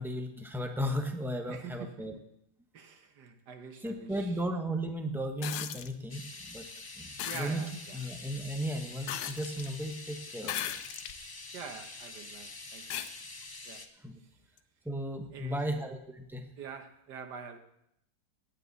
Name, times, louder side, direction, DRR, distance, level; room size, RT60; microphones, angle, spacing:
voice 1, 0.0-2.1 3.8-6.6 7.0-7.6 7.9-10.5 14.0-14.1 14.8-16.5, equal, ahead, 4 dB, 0.9 m, -35 dB
voice 2, 1.5-2.2 2.7-4.4 7.3-8.0 11.5-13.0 13.7-13.9 15.3-15.9 16.6-17.6, right 6 dB, 85° right, 7 dB, 1.7 m, -46 dB
sound 1, 5.4-5.9 7.2-7.5 9.1-9.7 10.4-11.2 11.8-11.9 12.9-13.1 14.6-14.7, left 10 dB, 80° left, 1.2 m, -36 dB
sound 2, 6.1-13.9, left 3 dB, 30° left, 0.4 m, -46 dB
18.0 x 9.0 x 4.1 m, 0.78 s
omnidirectional pair, 1.8 m